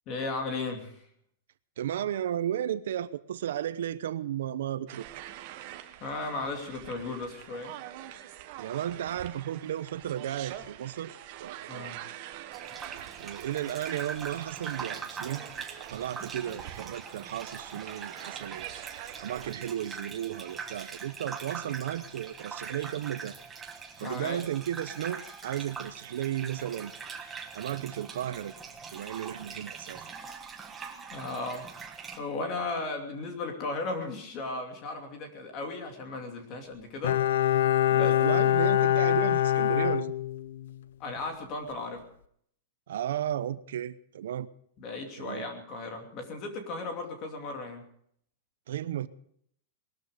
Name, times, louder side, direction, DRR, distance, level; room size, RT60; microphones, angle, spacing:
voice 1, 0.1-1.0 6.0-7.7 11.7-12.0 24.0-24.4 31.1-31.7 32.2-37.2 37.9-38.1 41.0-42.0 44.8-47.8, left 3 dB, 25° left, 4 dB, 2.6 m, -36 dB
voice 2, 1.8-5.1 8.6-11.1 11.4-12.0 13.2-15.4 15.9-18.7 19.2-23.3 24.0-26.9 27.5-28.5 28.9-30.1 38.0-40.1 42.9-44.5 45.2-45.4 48.7-49.1, right 11 dB, 75° right, 14 dB, 0.8 m, -34 dB
sound 1, 4.9-19.5, right 13 dB, 40° right, 1.1 m, -45 dB
Gurgling / Bathtub (filling or washing), 12.5-32.2, right 5 dB, 10° right, 1.3 m, -42 dB
Bowed string instrument, 37.0-40.8 41.1-41.2, left 12 dB, 90° left, 0.6 m, -24 dB
20.5 x 13.0 x 5.0 m, 0.67 s
supercardioid pair, 180°, 0 cm